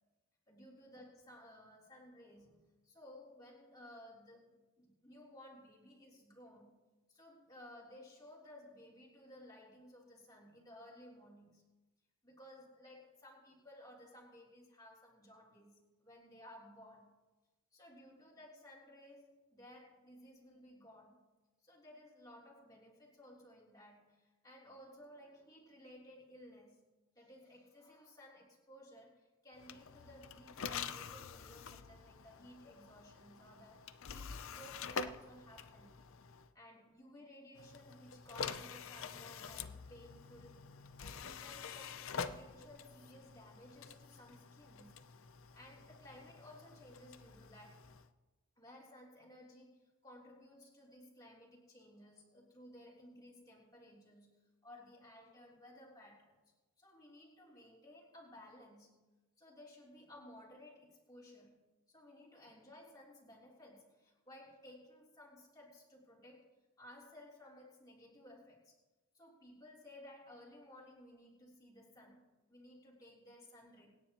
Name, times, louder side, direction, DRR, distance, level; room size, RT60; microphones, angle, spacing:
voice 1, 0.5-6.7 7.1-11.6 12.2-17.2 17.7-21.3 21.6-26.8 27.2-36.0 36.5-40.7 41.0-45.1 45.5-47.9 48.6-56.4 56.8-59.0 59.4-68.8 69.1-73.9, left 1 dB, 15° left, -5 dB, 3.5 m, -57 dB
sound 1, 29.6-36.5 37.5-48.1, left 6 dB, 65° left, 0.6 m, -47 dB
26.5 x 9.9 x 3.0 m, 1.2 s
head